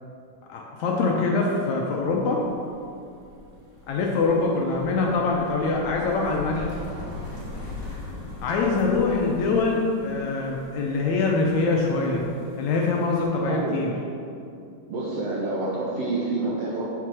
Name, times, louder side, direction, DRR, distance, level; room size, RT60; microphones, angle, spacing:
voice 1, 0.5-2.4 3.9-6.7 8.4-12.2 12.6-13.9, left 3 dB, 75° left, -1 dB, 1.8 m, -24 dB
sound 1, 2.0-13.2, left 3 dB, 30° left, 1.0 m, -41 dB
voice 2, 13.5-13.8 14.9-16.9, right 2 dB, 70° right, -5 dB, 1.7 m, -28 dB
6.9 x 5.9 x 4.7 m, 2.5 s
omnidirectional pair, 3.7 m